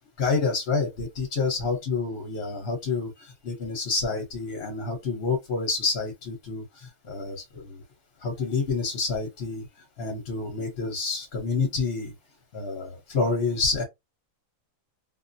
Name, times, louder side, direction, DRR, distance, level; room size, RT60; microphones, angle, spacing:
voice 1, 0.2-7.8 8.2-9.7 10.0-12.1 12.5-13.8, left 4 dB, 50° left, 1.0 m, -28 dB
2.6 x 2.1 x 2.5 m
omnidirectional pair, 1.4 m